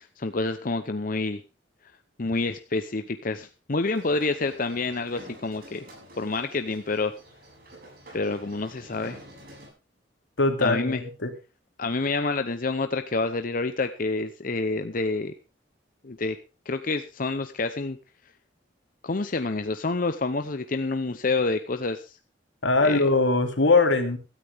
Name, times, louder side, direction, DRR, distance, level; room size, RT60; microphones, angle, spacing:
voice 1, 0.0-1.4 2.2-5.8 6.2-7.1 8.1-9.2 10.6-11.0 11.8-15.3 16.0-16.4 16.7-18.0 19.0-22.1 22.8-23.0, left 3 dB, 50° left, 8 dB, 0.8 m, -28 dB
sound 1, 3.8-9.7, right 1 dB, 55° right, 7.7 m, -48 dB
voice 2, 10.4-11.3 22.6-24.2, left 3 dB, 85° left, 5 dB, 2.7 m, -21 dB
16.5 x 13.5 x 3.5 m, 0.30 s
head